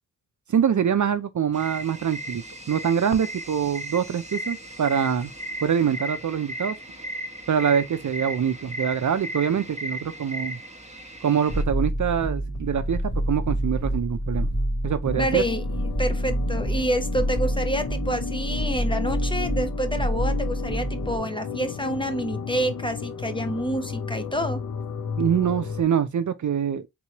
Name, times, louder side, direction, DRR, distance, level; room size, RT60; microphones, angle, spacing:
voice 1, 0.5-5.3 5.6-6.8 7.5-10.6 11.2-14.5 14.8-15.4 25.2-26.9, right 8 dB, 55° right, 0.5 m, -24 dB
sound 1, 1.5-11.6, equal, 20° right, 1.0 m, -36 dB
sound 2, 11.5-21.2, right 1 dB, 45° left, 1.5 m, -27 dB
sound 3, 15.1-25.8, left 7 dB, 60° left, 0.5 m, -34 dB
voice 2, 15.1-15.6 16.0-24.6, right 1 dB, 15° left, 0.7 m, -28 dB
3.7 x 3.0 x 2.8 m
wide cardioid pair, 60°, 36 cm